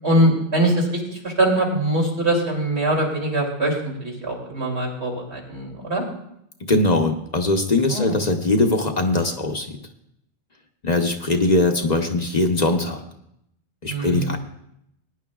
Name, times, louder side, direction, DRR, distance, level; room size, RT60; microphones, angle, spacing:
voice 1, 0.0-6.0 7.9-8.1 13.9-14.4, right 1 dB, 80° right, -2 dB, 3.1 m, -22 dB
voice 2, 6.7-9.8 10.8-13.0 13.8-14.4, left 2 dB, 40° left, 4 dB, 1.0 m, -21 dB
20.0 x 10.0 x 2.4 m, 0.76 s
omnidirectional pair, 1.1 m